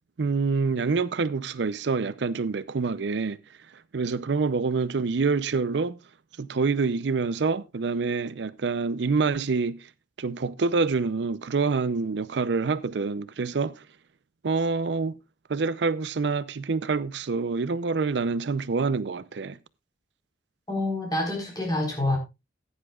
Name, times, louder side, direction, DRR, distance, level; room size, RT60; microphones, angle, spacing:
voice 1, 0.2-3.4 3.9-6.0 6.4-9.8 10.2-13.8 14.4-15.2 15.5-19.6, right 4 dB, 70° right, 0.5 m, -26 dB
voice 2, 20.7-22.2, left 2 dB, 20° left, 4.0 m, -27 dB
16.0 x 9.9 x 2.3 m
head